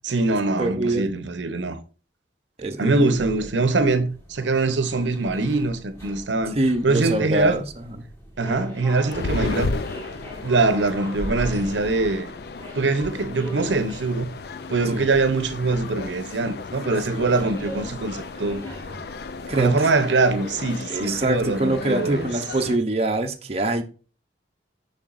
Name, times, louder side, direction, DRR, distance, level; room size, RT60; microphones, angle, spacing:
voice 1, 0.0-1.8 2.8-6.6 6.8-7.6 8.4-9.8 10.4-12.3 12.7-14.3 14.7-18.6 19.5-22.3, right 3 dB, 90° right, 0.8 m, -23 dB
voice 2, 0.6-1.0 2.6-3.1 6.5-8.0 9.4-9.5 14.9-15.0 17.1-17.2 19.5-19.7 20.9-23.8, right 2 dB, 35° right, 0.7 m, -24 dB
sound 1, 3.0-19.6, equal, 15° left, 2.3 m, -40 dB
sound 2, 9.1-22.8, left 4 dB, 60° left, 0.4 m, -34 dB
7.0 x 5.7 x 2.5 m
head